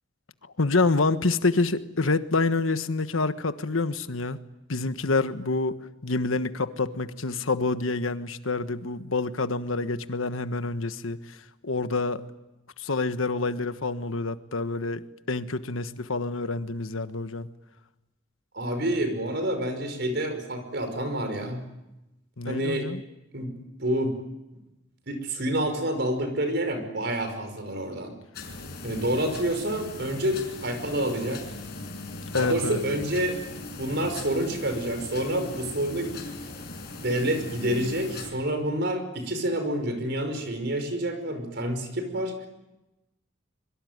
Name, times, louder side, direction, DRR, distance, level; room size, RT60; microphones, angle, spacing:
voice 1, 0.6-4.4 4.7-11.4 11.6-12.2 12.8-17.5 22.4-23.0 32.3-32.8, left 3 dB, 90° left, 11 dB, 1.3 m, -27 dB
voice 2, 18.5-21.6 22.5-22.9 23.3-23.5 23.8-24.2 25.1-28.1 28.8-31.4 32.3-33.4 33.8-36.1 37.0-42.5, right 1 dB, 55° right, 8 dB, 5.4 m, -28 dB
sound 1, 28.3-38.3, left 3 dB, 55° left, 6.0 m, -39 dB
25.5 x 23.5 x 9.5 m, 0.97 s
head